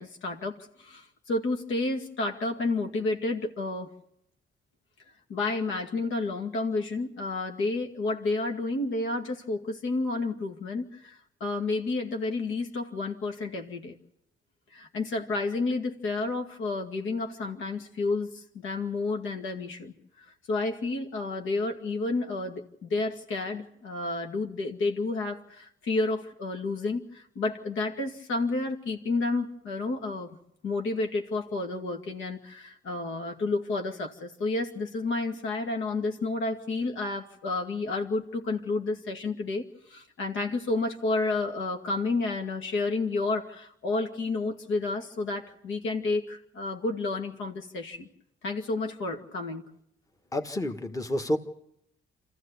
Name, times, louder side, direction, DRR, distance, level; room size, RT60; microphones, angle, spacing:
voice 1, 0.0-3.9 5.3-14.0 14.7-30.3 30.6-48.1 48.4-49.7, left 3 dB, 80° left, 4 dB, 2.3 m, -30 dB
voice 2, 50.3-51.4, left 1 dB, 15° left, 6 dB, 1.5 m, -29 dB
26.5 x 14.5 x 8.2 m, 0.76 s
cardioid pair, 90°, 20 cm